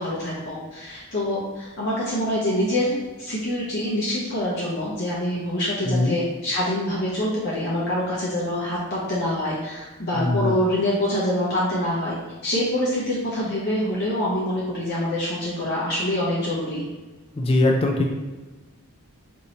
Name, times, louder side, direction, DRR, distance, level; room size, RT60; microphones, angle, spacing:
voice 1, 0.0-12.2 12.4-16.8, left 1 dB, 50° left, -7 dB, 0.7 m, -25 dB
voice 2, 5.8-6.2 10.1-10.6 17.4-18.1, left 2 dB, 25° left, 1 dB, 0.3 m, -21 dB
2.9 x 2.7 x 4.2 m, 1.2 s
head